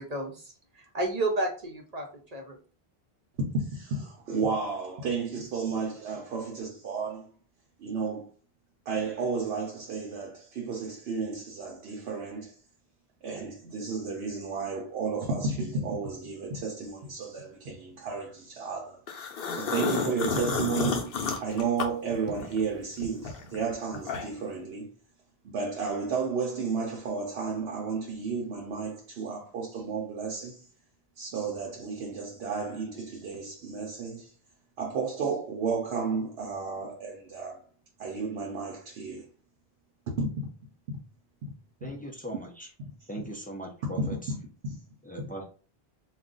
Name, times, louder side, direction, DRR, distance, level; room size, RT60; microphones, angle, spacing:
voice 1, 0.0-2.6, right 2 dB, 45° right, 0.7 m, -32 dB
voice 2, 3.4-7.3 7.8-8.3 8.9-12.5 13.2-19.0 19.5-21.1 21.4-24.9 25.4-30.7 31.2-34.3 34.8-37.6 38.0-39.3 40.1-40.3 41.8-41.9 44.0-44.4 44.6-44.8, right 4 dB, 80° right, 0.9 m, -32 dB
sound 1, 19.1-22.6 23.0-24.5, left 5 dB, 70° left, 0.8 m, -31 dB
voice 3, 41.8-42.7 43.1-44.2 45.1-45.5, equal, 15° left, 0.3 m, -39 dB
2.3 x 2.3 x 3.8 m
omnidirectional pair, 1.0 m